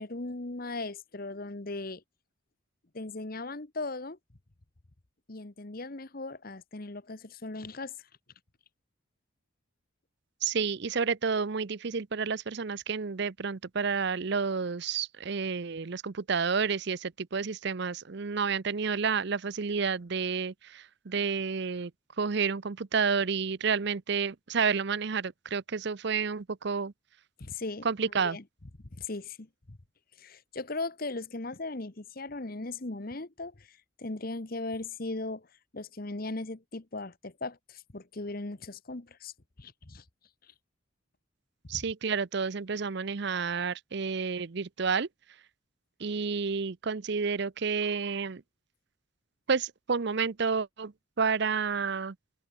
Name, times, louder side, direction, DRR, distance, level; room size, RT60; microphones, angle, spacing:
voice 1, 0.0-2.0 2.9-4.2 5.3-7.9 27.4-28.4 28.9-29.8 30.2-35.5 35.7-39.3 39.6-40.0, left 2 dB, 45° left, 1.2 m, -38 dB
voice 2, 10.4-21.9 22.2-26.9 27.8-28.4 41.7-45.1 46.0-48.4 49.5-52.2, right 5 dB, 55° right, 0.6 m, -30 dB
head